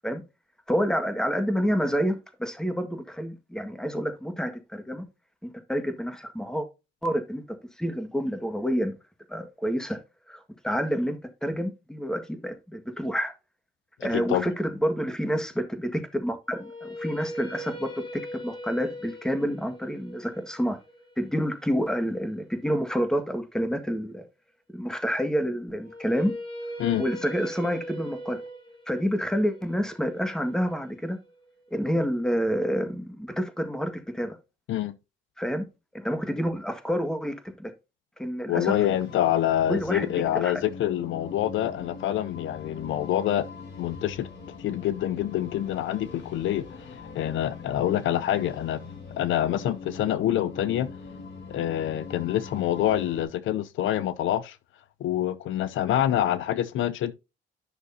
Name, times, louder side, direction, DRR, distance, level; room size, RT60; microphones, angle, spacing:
voice 1, 0.7-5.0 5.4-6.7 7.0-7.4 7.8-8.9 9.3-10.0 10.3-13.3 14.0-17.9 18.3-20.8 21.2-24.2 24.7-26.3 27.0-28.4 28.9-31.2 31.7-34.4 35.4-35.6 35.9-37.7 38.2-38.7 39.7-40.5, equal, 5° left, 1.6 m, -28 dB
voice 2, 14.0-14.4 26.8-27.0 34.7-35.0 38.5-43.5 43.8-44.3 44.6-48.8 49.2-50.9 51.5-54.6 55.0-57.1, left 12 dB, 75° left, 0.6 m, -26 dB
sound 1, 16.4-22.5 25.8-31.9, equal, 25° left, 3.3 m, -40 dB
sound 2, 38.9-53.2, left 4 dB, 60° left, 3.5 m, -42 dB
11.0 x 6.1 x 2.7 m
cardioid pair, 90°, 20 cm